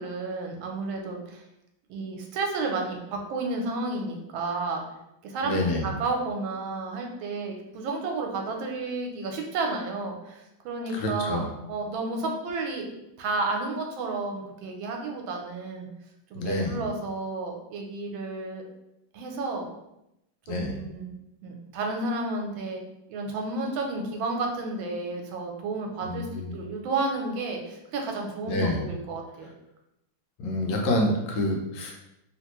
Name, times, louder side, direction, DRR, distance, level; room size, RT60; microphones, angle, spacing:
voice 1, 0.0-1.4 1.9-4.8 5.2-15.9 16.3-18.6 19.1-19.7 20.5-21.1 21.4-22.8 23.1-29.5, right 3 dB, 80° right, 2 dB, 1.4 m, -32 dB
voice 2, 5.4-5.8 10.9-11.5 16.3-16.8 20.5-20.8 26.1-26.5 28.5-28.8 30.4-31.9, left 1 dB, 80° left, 1 dB, 1.5 m, -27 dB
3.4 x 2.5 x 2.9 m, 0.86 s
omnidirectional pair, 2.1 m